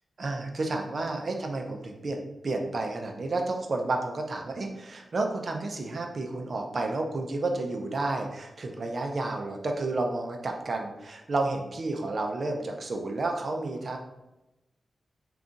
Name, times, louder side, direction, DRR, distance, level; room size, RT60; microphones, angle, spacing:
voice 1, 0.2-14.0, right 2 dB, 45° right, 3 dB, 0.5 m, -31 dB
3.8 x 2.3 x 3.6 m, 0.99 s
wide cardioid pair, 165°, 0 cm